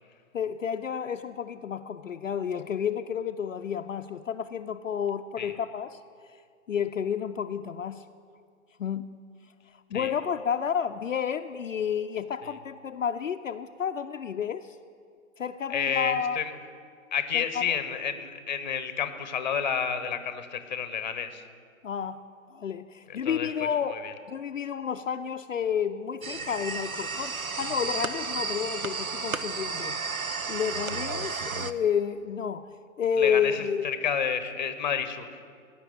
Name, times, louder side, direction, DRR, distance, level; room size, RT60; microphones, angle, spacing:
voice 1, 0.3-6.0 6.7-8.0 8.8-9.2 9.9-14.8 15.4-16.4 17.3-17.8 21.8-22.2 22.5-24.0 24.3-30.0 30.5-32.7 33.0-33.9, left 7 dB, 70° left, 7 dB, 0.5 m, -30 dB
voice 2, 15.7-16.5 17.1-21.4 23.1-24.1 33.2-35.4, left 7 dB, 35° left, 11 dB, 0.7 m, -30 dB
sound 1, 26.2-31.7, right 4 dB, 90° right, 0.7 m, -33 dB
15.5 x 5.9 x 7.9 m, 2.2 s
figure-of-eight pair, 130°, 41 cm